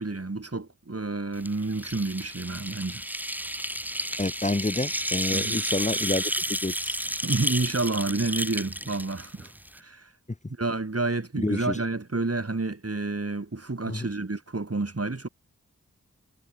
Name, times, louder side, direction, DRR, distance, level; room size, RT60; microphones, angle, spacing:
voice 1, 0.0-3.0 5.3-5.6 7.2-10.1 10.6-15.3, right 3 dB, 50° right, 2.5 m, -29 dB
sound 1, 1.4-9.8, equal, 5° right, 1.9 m, -31 dB
voice 2, 4.2-6.3 6.6-7.0 11.4-11.8 13.9-14.1, left 2 dB, 25° left, 0.8 m, -28 dB
wide cardioid pair, 40°, 31 cm